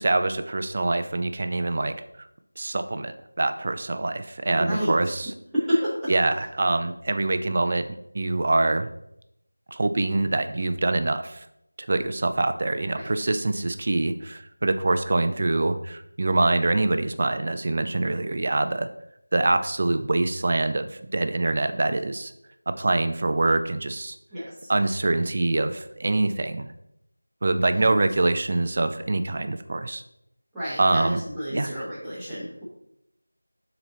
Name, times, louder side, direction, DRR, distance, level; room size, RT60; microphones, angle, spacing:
voice 1, 0.0-2.3 2.6-5.3 6.1-8.9 9.7-11.5 11.8-18.9 19.3-22.3 22.7-24.2 24.7-26.7 27.4-30.0 30.8-31.2 31.5-31.7, right 2 dB, 30° right, 9 dB, 0.3 m, -25 dB
voice 2, 4.5-4.9 5.5-6.1 12.9-13.1 24.3-24.7 27.7-27.9 30.5-32.6, equal, ahead, -15 dB, 1.1 m, -29 dB
6.1 x 3.9 x 3.9 m, 0.81 s
figure-of-eight pair, 175°, 0 cm